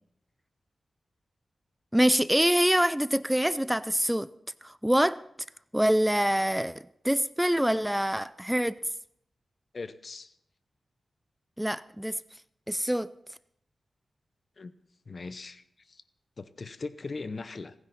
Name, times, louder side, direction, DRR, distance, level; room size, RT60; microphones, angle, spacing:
voice 1, 1.9-4.3 4.6-5.2 5.7-8.8 11.6-12.2 12.7-13.1, equal, 5° right, 0.5 m, -25 dB
voice 2, 9.7-10.3 14.6-14.7 15.1-16.0 16.4-17.7, left 3 dB, 55° left, 0.8 m, -39 dB
26.5 x 9.8 x 4.2 m
cardioid pair, 50°, 0 cm